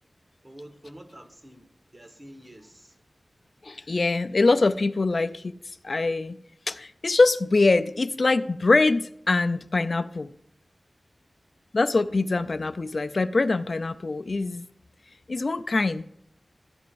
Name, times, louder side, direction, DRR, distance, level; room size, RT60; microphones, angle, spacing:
voice 1, 0.4-3.0, right 1 dB, 35° right, 1.3 m, -47 dB
voice 2, 3.6-5.5 5.8-6.4 6.7-10.3 11.7-14.6 15.3-16.0, left 3 dB, 60° left, 0.4 m, -23 dB
14.0 x 9.4 x 2.5 m
wide cardioid pair, 60°, 0 cm